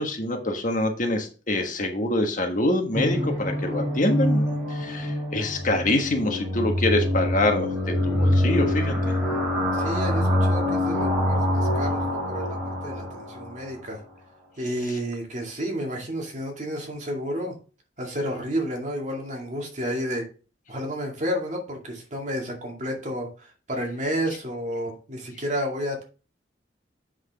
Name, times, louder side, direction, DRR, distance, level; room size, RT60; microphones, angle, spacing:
voice 1, 0.0-7.7 8.0-8.9, left 1 dB, 45° left, 4 dB, 1.4 m, -25 dB
sound 1, 2.9-13.7, left 1 dB, 10° right, 3.4 m, -25 dB
voice 2, 9.7-14.0 14.6-17.5 18.0-20.2 20.7-26.0, equal, 40° right, 1 dB, 2.2 m, -31 dB
7.8 x 6.2 x 3.6 m, 0.36 s
head